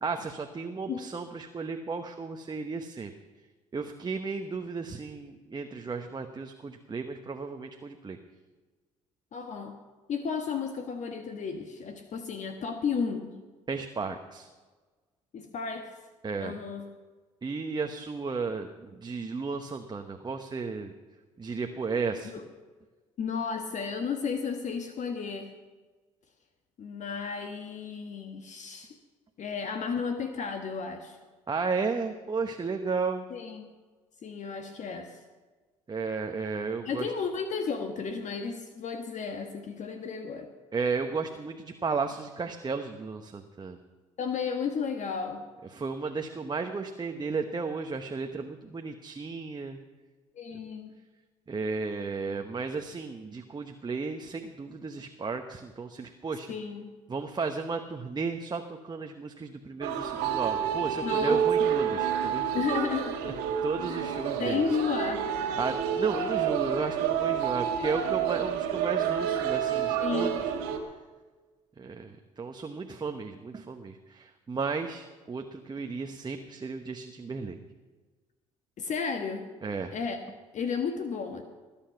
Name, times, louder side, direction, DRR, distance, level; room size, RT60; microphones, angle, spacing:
voice 1, 0.0-3.1 3.7-8.2 13.7-14.5 16.2-16.6 17.4-20.9 21.4-22.3 31.5-33.3 35.9-37.1 40.7-43.8 45.7-49.8 51.5-56.5 57.1-62.6 63.2-63.3 63.6-64.6 65.6-70.5 71.8-77.6 79.6-79.9, right 4 dB, 25° right, 4 dB, 1.1 m, -34 dB
voice 2, 9.3-9.7 10.1-13.3 15.3-15.9 16.4-16.8 22.3-22.5 23.2-25.5 26.8-29.0 29.4-31.2 33.3-33.7 34.2-35.2 36.8-40.5 44.2-45.4 50.3-50.9 56.5-56.9 61.0-61.8 62.5-63.2 63.9-64.1 64.4-65.2 70.0-70.4 78.8-79.5 79.9-80.2 80.5-81.4, left 5 dB, 50° left, 6 dB, 1.4 m, -33 dB
sound 1, 59.8-70.8, right 8 dB, 75° right, 1.7 m, -29 dB
20.5 x 8.9 x 5.9 m, 1.3 s
hypercardioid pair, 55°, 16 cm